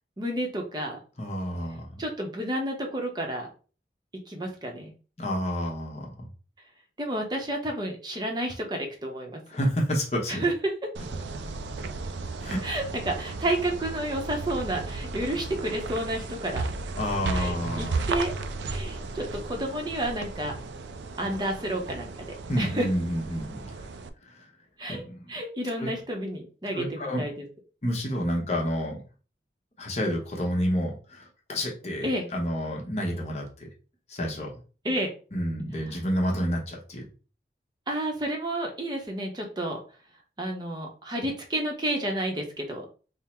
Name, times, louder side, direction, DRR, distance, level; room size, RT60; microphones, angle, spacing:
voice 1, 0.2-1.0 2.0-3.5 4.3-4.9 7.0-9.4 10.3-10.5 12.6-16.7 17.3-18.3 18.6-20.5 21.2-22.1 22.6-22.9 24.8-27.3 32.0-32.3 34.8-35.1 37.9-39.8 40.4-42.8, right 1 dB, 25° right, 1 dB, 0.7 m, -30 dB
voice 2, 1.2-1.9 5.2-6.3 9.5-10.5 12.4-12.6 17.0-18.1 22.5-23.6 24.2-24.4 24.9-25.4 25.8-25.9 26.7-27.3 27.8-29.0 29.8-33.5 34.1-34.6 35.3-37.1, equal, 40° left, -1 dB, 0.9 m, -29 dB
sound 1, 10.9-24.1, right 3 dB, 85° right, 0.4 m, -35 dB
3.7 x 2.0 x 4.3 m, 0.36 s
head